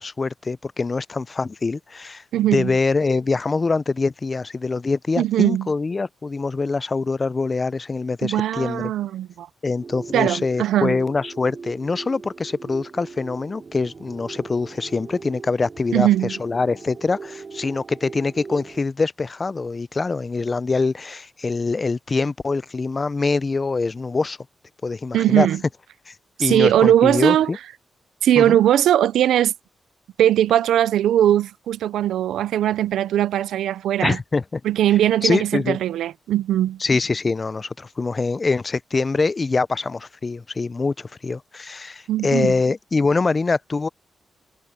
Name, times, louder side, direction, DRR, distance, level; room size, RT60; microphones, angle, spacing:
voice 1, 0.0-2.2 2.5-8.9 9.6-24.4 24.8-25.5 26.1-26.2 26.4-27.6 28.4-28.6 34.0-34.6 35.2-35.8 36.8-43.9, left 3 dB, 40° left, 0.6 m, -24 dB
voice 2, 2.3-2.8 5.2-5.7 8.2-9.5 10.1-11.0 15.9-16.3 25.1-25.6 26.4-27.5 28.2-29.5 30.2-34.2 34.6-36.8 42.1-42.5, right 11 dB, 90° right, 0.6 m, -19 dB
sound 1, 9.8-18.8, right 4 dB, 50° right, 6.9 m, -39 dB
cardioid pair, 55°, 0 cm